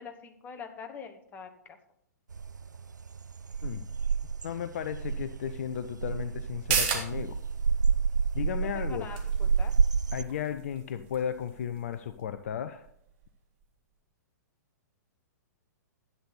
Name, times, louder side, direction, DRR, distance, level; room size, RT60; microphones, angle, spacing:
voice 1, 0.0-1.8 8.6-9.7, left 6 dB, 20° left, 6 dB, 1.1 m, -44 dB
sound 1, 2.3-10.2, right 5 dB, 80° right, 0.3 m, -29 dB
voice 2, 4.4-7.4 8.3-9.1 10.1-12.9, left 9 dB, 50° left, 10 dB, 0.6 m, -34 dB
sound 2, 6.5-13.6 14.0-14.1, right 7 dB, 40° right, 1.9 m, -37 dB
11.5 x 8.3 x 4.0 m, 0.72 s
figure-of-eight pair, 110°, 10 cm